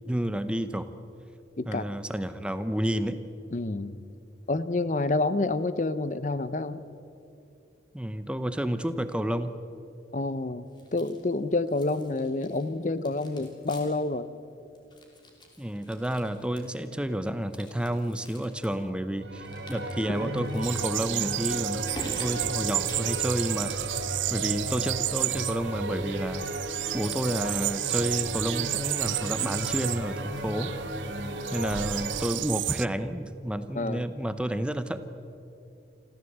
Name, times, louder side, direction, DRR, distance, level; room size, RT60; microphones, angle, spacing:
voice 1, 0.1-0.9 1.7-3.2 7.9-9.6 15.6-21.8 22.2-26.4 26.9-30.7 31.5-35.0, equal, 5° right, 11 dB, 0.7 m, -30 dB
voice 2, 3.5-4.0 4.5-6.8 10.1-14.3 24.7-24.8 33.7-34.1, left 2 dB, 40° left, 14 dB, 0.6 m, -28 dB
sound 1, 10.7-11.4 11.7-12.7 13.0-14.1 14.4-14.5 14.7-16.9 17.4-18.7 19.5-23.3, equal, 25° left, 3.1 m, -46 dB
sound 2, 19.2-32.3, right 1 dB, 65° right, 2.7 m, -35 dB
sound 3, 20.6-32.9, right 16 dB, 80° right, 0.4 m, -32 dB
26.5 x 14.5 x 8.0 m, 2.6 s
head